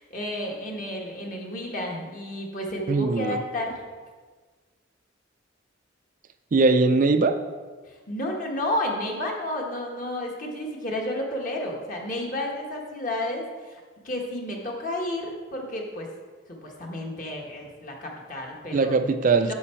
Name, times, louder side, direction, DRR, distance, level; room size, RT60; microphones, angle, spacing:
voice 1, 0.0-3.8 7.9-16.1 16.5-18.9 19.4-19.5, left 1 dB, 40° left, 0 dB, 1.4 m, -31 dB
voice 2, 2.9-3.4 6.5-7.4 18.7-19.5, right 3 dB, 40° right, 8 dB, 0.3 m, -21 dB
8.2 x 7.1 x 4.4 m, 1.5 s
head